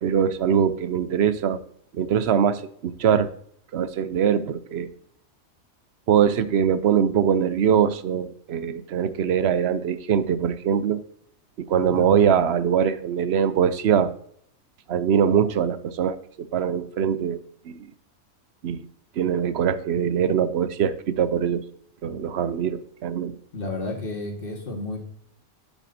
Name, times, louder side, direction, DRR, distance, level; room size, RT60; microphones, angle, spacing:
voice 1, 0.0-1.6 1.9-3.3 3.7-4.9 6.1-11.0 11.6-14.1 14.9-17.9 18.6-18.9 19.2-21.6 22.0-23.3, right 8 dB, 60° right, 13 dB, 0.8 m, -22 dB
voice 2, 23.5-25.0, left 2 dB, 40° left, 0 dB, 1.9 m, -31 dB
9.2 x 8.4 x 2.7 m, 0.64 s
omnidirectional pair, 1.4 m